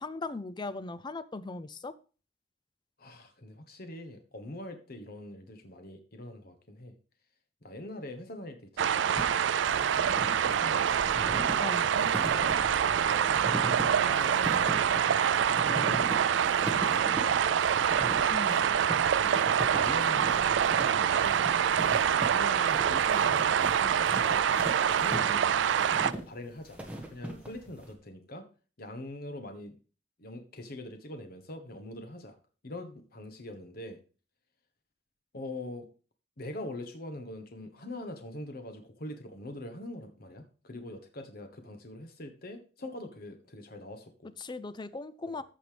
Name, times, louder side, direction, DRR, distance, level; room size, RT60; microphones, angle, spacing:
voice 1, 0.0-1.9 11.6-11.9 18.3-18.6 44.4-45.4, left 3 dB, 25° left, 15 dB, 0.5 m, -38 dB
voice 2, 3.0-6.9 7.6-9.2 10.1-11.4 11.9-14.8 15.6-18.3 19.2-22.0 22.3-24.5 24.9-25.5 26.0-26.8 27.1-28.5 28.8-29.8 30.2-32.3 32.6-34.0 35.3-35.9 36.4-44.3 45.3-45.4, left 1 dB, 55° left, 7 dB, 1.3 m, -43 dB
sound 1, 8.8-26.1, right 8 dB, 70° right, 0.4 m, -26 dB
sound 2, 9.2-27.9, right 1 dB, 5° right, 1.7 m, -40 dB
14.0 x 5.5 x 3.3 m, 0.37 s
head